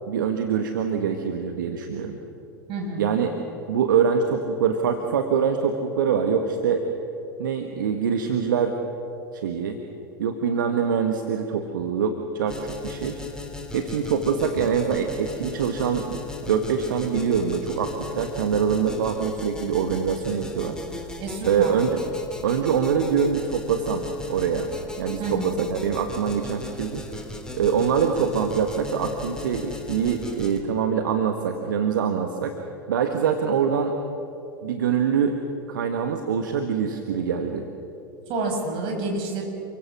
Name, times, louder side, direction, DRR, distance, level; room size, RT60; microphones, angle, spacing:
voice 1, 0.1-2.2 3.0-3.3 3.7-6.8 7.4-8.8 9.3-9.8 10.2-13.2 13.7-16.2 16.5-20.8 21.4-22.0 22.4-24.0 24.3-24.7 25.0-27.2 27.5-32.5 32.9-33.9 34.6-35.4 35.7-37.6, right 7 dB, 70° right, 5 dB, 1.7 m, -24 dB
voice 2, 2.7-3.1 21.2-21.8 25.2-25.6 38.3-39.5, right 3 dB, 45° right, 1 dB, 7.0 m, -29 dB
sound 1, 12.5-30.6, left 3 dB, 5° left, 3.3 m, -37 dB
29.0 x 23.5 x 6.3 m, 2.8 s
figure-of-eight pair, 85°, 11 cm